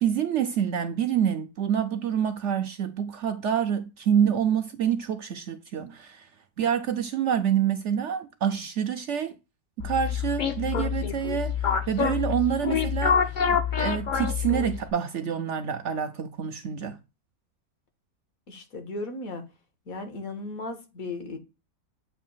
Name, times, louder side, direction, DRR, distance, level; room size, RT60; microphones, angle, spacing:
voice 1, 0.0-6.3 6.6-9.3 9.8-17.0, right 8 dB, 65° right, 0.8 m, -27 dB
sound 1, 9.8-14.9, left 7 dB, 45° left, 0.7 m, -27 dB
voice 2, 18.5-19.4 19.9-21.4, left 2 dB, 65° left, 1.8 m, -36 dB
8.3 x 2.8 x 5.5 m
omnidirectional pair, 1.6 m